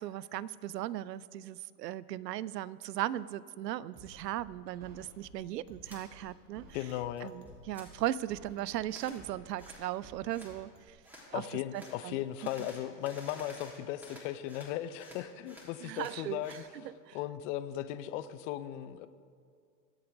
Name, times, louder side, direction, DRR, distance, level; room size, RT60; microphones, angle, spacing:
voice 1, 0.0-6.6 7.2-11.0 11.3-11.4 11.7-12.2 12.6-12.7 15.8-16.4 17.1-17.2, right 13 dB, 80° right, 20 dB, 0.5 m, -37 dB
sound 1, 3.9-10.9, right 2 dB, 40° right, 2.5 m, -55 dB
sound 2, 5.8-6.0 6.5-7.2 7.5-7.9 8.9-9.2 9.6-9.9 10.3-10.5 11.0-11.3 11.7-12.0 12.4-14.7 15.0-16.7, equal, 5° right, 3.2 m, -52 dB
voice 2, 6.7-7.6 11.3-16.6 17.1-19.1, left 12 dB, 50° left, 13 dB, 0.7 m, -37 dB
23.5 x 8.1 x 3.5 m, 2.2 s
hypercardioid pair, 105°, 49 cm